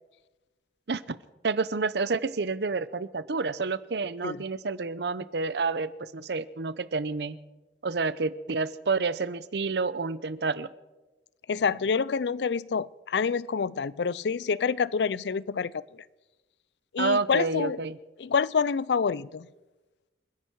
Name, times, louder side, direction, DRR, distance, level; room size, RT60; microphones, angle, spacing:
voice 1, 1.4-7.4 7.8-10.7 17.0-18.0, right 4 dB, 70° right, 0.7 m, -29 dB
voice 2, 11.5-15.8 16.9-17.8 18.2-19.5, left 5 dB, 75° left, 0.4 m, -27 dB
29.5 x 10.0 x 4.7 m
head